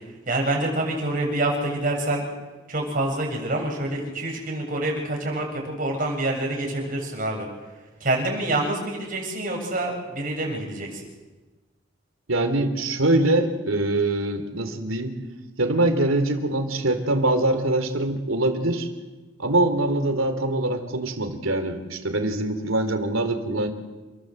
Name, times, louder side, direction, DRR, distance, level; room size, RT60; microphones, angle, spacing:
voice 1, 0.3-2.3 2.7-7.5 8.0-11.0, right 1 dB, 40° right, 0 dB, 7.8 m, -26 dB
voice 2, 12.3-15.1 15.6-18.9 19.4-23.7, right 2 dB, 80° right, 7 dB, 3.4 m, -23 dB
29.0 x 21.5 x 7.9 m, 1.2 s
head